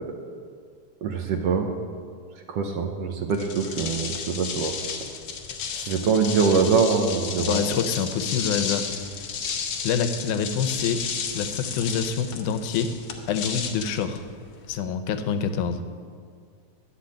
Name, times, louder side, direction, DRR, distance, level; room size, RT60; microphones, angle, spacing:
voice 1, 1.0-1.7 2.5-4.7 5.9-7.6, right 5 dB, 70° right, 3 dB, 1.6 m, -23 dB
sound 1, 3.3-14.8, left 6 dB, 65° left, 1.3 m, -33 dB
voice 2, 5.7-6.0 7.4-8.9 9.8-11.0 11.3-12.9 13.3-14.2 14.7-15.8, left 7 dB, 90° left, 8 dB, 2.2 m, -26 dB
12.0 x 5.9 x 8.6 m, 2.1 s
omnidirectional pair, 3.4 m